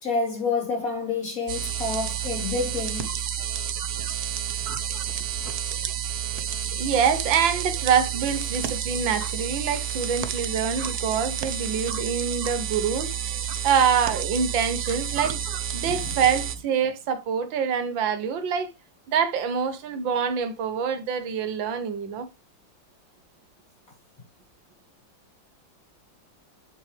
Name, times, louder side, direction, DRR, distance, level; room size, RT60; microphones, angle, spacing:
voice 1, 0.0-3.1 15.8-16.0, left 4 dB, 45° left, 4.1 m, -28 dB
sound 1, 1.5-16.6, right 10 dB, 60° right, 1.3 m, -30 dB
voice 2, 6.7-15.4 15.7-18.7 19.1-22.3, right 7 dB, 80° right, 1.9 m, -25 dB
8.2 x 7.6 x 3.3 m
omnidirectional pair, 2.1 m